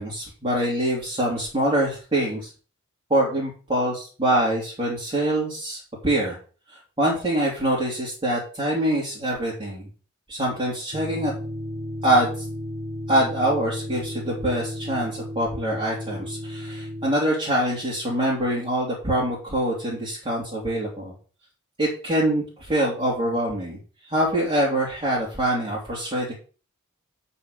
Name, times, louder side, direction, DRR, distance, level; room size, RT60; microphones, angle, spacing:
voice 1, 0.0-2.5 3.1-6.4 6.7-9.9 10.3-11.3 12.0-12.4 13.1-21.1 21.8-26.3, right 1 dB, 25° right, -6 dB, 3.0 m, -24 dB
sound 1, 10.9-17.1, equal, 50° right, 1.6 m, -34 dB
9.8 x 4.4 x 6.6 m, 0.38 s
head